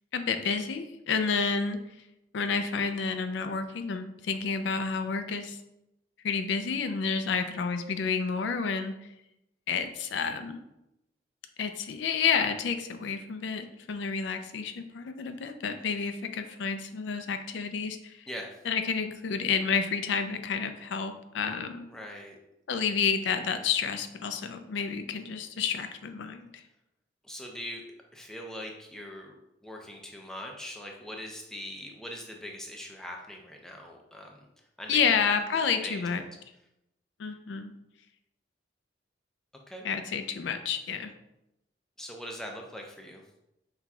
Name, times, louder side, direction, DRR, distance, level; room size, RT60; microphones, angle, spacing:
voice 1, 0.1-1.8 2.3-5.6 6.2-8.9 9.7-10.6 11.6-18.2 18.7-21.9 22.7-26.6 34.9-36.2 37.2-37.7 39.8-41.1, left 6 dB, 75° left, 8 dB, 0.4 m, -30 dB
voice 2, 21.9-22.4 27.2-27.8 28.1-29.3 29.6-34.5 34.8-35.3 35.8-36.0 39.7-39.9 42.0-43.2, equal, 5° left, 0 dB, 0.5 m, -41 dB
5.7 x 3.5 x 2.3 m, 0.87 s
head